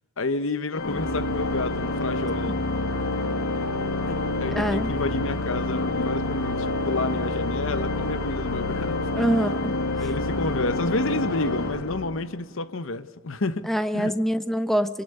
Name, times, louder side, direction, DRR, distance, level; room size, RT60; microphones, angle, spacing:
voice 1, 0.2-2.6 4.1-9.0 9.3-9.4 10.0-13.7 13.9-14.2, left 3 dB, 65° left, 13 dB, 1.0 m, -30 dB
Organ, 0.7-12.6, left 2 dB, 80° left, 1.3 m, -27 dB
voice 2, 4.5-4.9 9.1-9.8 13.7-15.0, equal, ahead, 9 dB, 0.9 m, -25 dB
26.0 x 18.0 x 6.7 m, 1.0 s
head